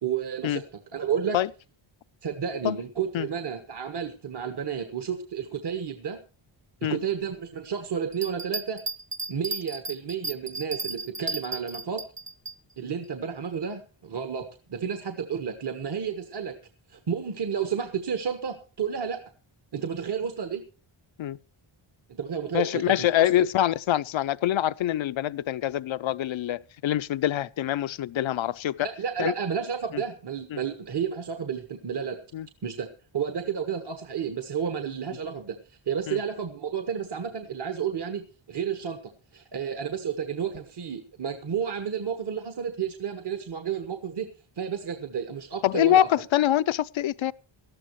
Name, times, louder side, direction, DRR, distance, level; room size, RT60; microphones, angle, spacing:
voice 1, 0.0-0.7 0.9-1.4 2.2-6.2 6.8-8.8 9.3-12.0 12.8-16.6 16.9-19.2 19.7-20.6 22.1-23.5 28.8-32.2 32.6-35.6 35.9-39.0 39.3-44.3 44.6-46.1, right 7 dB, 55° right, 1.4 m, -31 dB
Bell, 8.1-12.5 13.0-13.1, right 2 dB, 25° right, 0.7 m, -34 dB
voice 2, 22.5-28.9 29.2-29.3 29.9-30.0 30.5-30.6 32.3-32.5 36.1-36.2 45.6-47.3, left 12 dB, 65° left, 0.6 m, -25 dB
19.0 x 13.5 x 3.1 m
wide cardioid pair, 140°, 49 cm